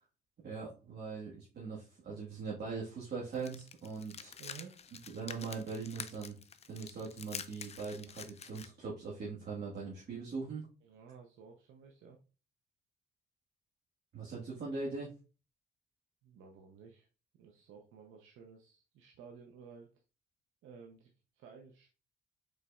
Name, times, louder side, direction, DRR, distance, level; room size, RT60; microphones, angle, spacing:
voice 1, 0.4-4.3 5.1-6.3 6.7-10.7 14.1-15.1, right 4 dB, 55° right, -5 dB, 1.5 m, -41 dB
sound 1, 3.3-8.7, left 6 dB, 35° left, 0.4 m, -47 dB
voice 2, 4.4-4.9 10.8-12.2 16.2-17.1 17.3-19.9 20.6-21.9, right 6 dB, 85° right, 1 dB, 0.7 m, -54 dB
5.4 x 4.0 x 2.3 m, 0.34 s
cardioid pair, 90°, 20 cm